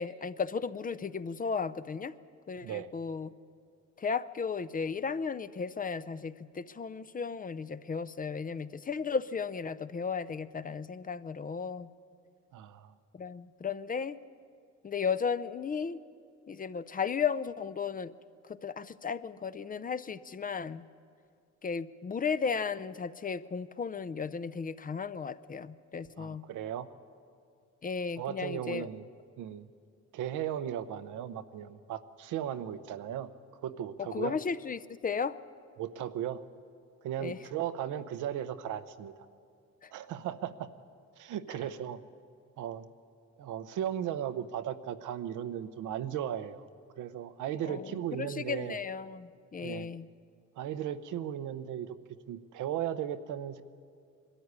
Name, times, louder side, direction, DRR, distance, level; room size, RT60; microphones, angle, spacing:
voice 1, 0.0-2.2 2.5-3.3 4.0-11.9 13.1-14.2 14.8-16.0 16.5-18.1 18.4-20.8 21.6-26.4 27.8-28.9 34.0-35.4 37.2-37.4 39.8-39.9 47.7-50.1, left 5 dB, 30° left, 15 dB, 0.5 m, -35 dB
voice 2, 2.6-2.9 12.5-12.9 26.2-26.9 28.2-29.0 29.4-29.7 30.1-33.3 33.6-34.4 35.8-36.4 37.0-39.3 39.9-40.7 41.2-42.0 42.6-42.9 43.4-46.7 47.0-48.8 49.6-49.9 50.6-52.0 52.3-53.6, right 10 dB, 85° right, 11 dB, 0.8 m, -36 dB
21.0 x 13.0 x 9.6 m, 2.3 s
cardioid pair, 90°, 30 cm